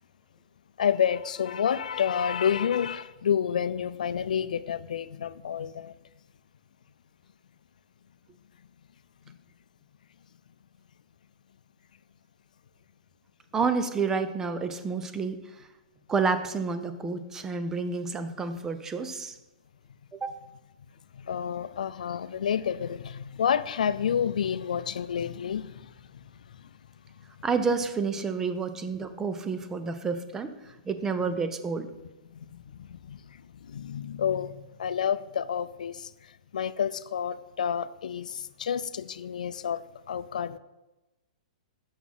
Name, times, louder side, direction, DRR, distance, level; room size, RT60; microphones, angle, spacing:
voice 1, 0.8-5.9 21.3-25.7 33.1-33.2 33.7-34.5 34.8-36.0 36.5-38.3 38.6-39.8 40.1-40.6, left 8 dB, 90° left, 15 dB, 0.4 m, -29 dB
voice 2, 13.5-15.5 16.1-19.4 20.1-20.3 27.4-30.5 30.9-31.9, right 4 dB, 10° right, 10 dB, 0.5 m, -29 dB
6.1 x 6.0 x 5.6 m, 1.0 s
hypercardioid pair, 155°, 4 cm